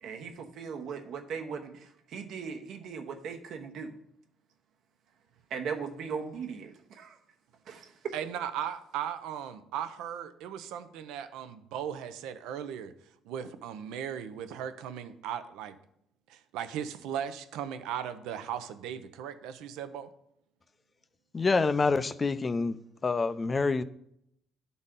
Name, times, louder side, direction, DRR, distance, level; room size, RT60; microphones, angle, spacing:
voice 1, 0.0-4.0 5.5-7.2 7.7-7.9, right 6 dB, 65° right, 1.0 m, -38 dB
voice 2, 8.1-12.9 13.2-15.8 16.3-20.1, right 9 dB, 85° right, 0.6 m, -37 dB
voice 3, 21.3-22.8 23.0-23.8, left 4 dB, 25° left, 0.4 m, -26 dB
11.5 x 4.0 x 3.7 m
cardioid pair, 110°, 0 cm